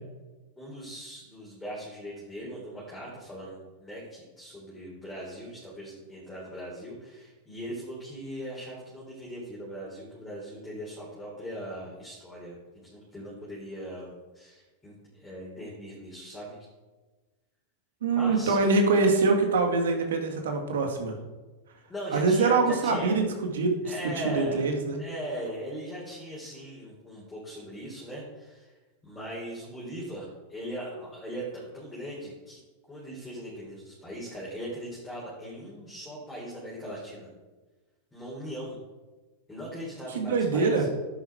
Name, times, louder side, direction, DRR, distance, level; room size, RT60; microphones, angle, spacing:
voice 1, 0.6-12.6 12.8-16.6 18.1-18.6 21.9-23.2 23.8-24.7 25.0-28.7 29.0-32.6 32.9-37.3 38.1-38.8 39.5-40.9, equal, 10° left, -6 dB, 3.9 m, -39 dB
voice 2, 18.0-21.1 22.1-23.9 24.2-25.0 40.1-40.9, right 3 dB, 85° right, 4 dB, 2.3 m, -24 dB
11.0 x 9.4 x 4.7 m, 1.2 s
supercardioid pair, 135°, 0 cm